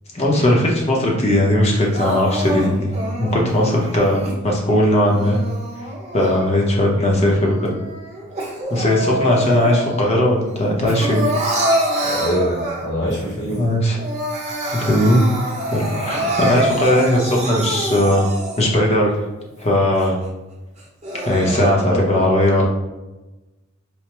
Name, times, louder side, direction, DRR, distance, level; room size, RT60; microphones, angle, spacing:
voice 1, 0.1-2.9 3.2-5.4 6.1-7.7 8.7-11.2 13.6-14.0 14.7-15.2 15.7-18.3 18.6-19.2 19.6-20.2 21.2-22.6, left 1 dB, 30° left, -2 dB, 0.7 m, -18 dB
Crying sobbing, 1.9-4.4 5.0-6.8 7.2-10.1 10.5-13.1 13.5-13.6 13.9-18.8 19.3-19.4 20.0-20.1 20.8-21.7, right 1 dB, 30° right, 0.7 m, -26 dB
voice 2, 12.0-13.7 16.1-16.3 21.9-22.2, equal, 50° left, -6 dB, 1.3 m, -24 dB
4.5 x 2.1 x 2.9 m, 1.1 s
head